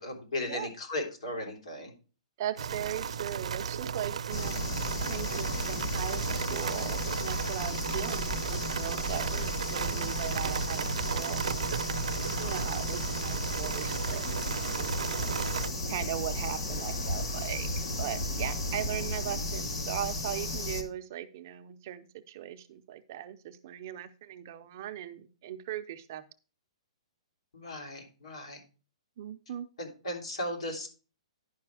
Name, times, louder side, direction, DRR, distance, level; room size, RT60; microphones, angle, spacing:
voice 1, 0.0-1.9 12.4-12.7 27.5-28.6 29.8-30.9, left 1 dB, 75° left, 2 dB, 3.4 m, -37 dB
voice 2, 2.4-4.5 5.1-11.8 12.3-14.3 14.6-15.0 15.9-26.2 29.2-29.7, right 11 dB, 30° right, 8 dB, 0.5 m, -39 dB
sound 1, 2.6-15.7, right 7 dB, 80° right, 0.6 m, -35 dB
sound 2, 4.3-20.8, left 1 dB, 45° left, 1.7 m, -34 dB
10.5 x 5.5 x 4.7 m, 0.36 s
hypercardioid pair, 180°, 3 cm